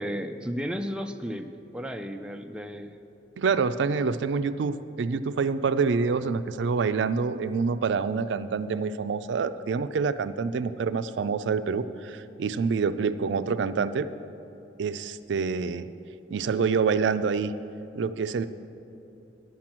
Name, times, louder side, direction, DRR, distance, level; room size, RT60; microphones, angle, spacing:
voice 1, 0.0-2.9, equal, 5° right, 5 dB, 0.3 m, -34 dB
voice 2, 3.4-14.1 14.8-15.9 16.3-17.5 18.0-18.5, right 5 dB, 75° right, 12 dB, 0.4 m, -27 dB
10.5 x 6.0 x 7.4 m, 2.9 s
head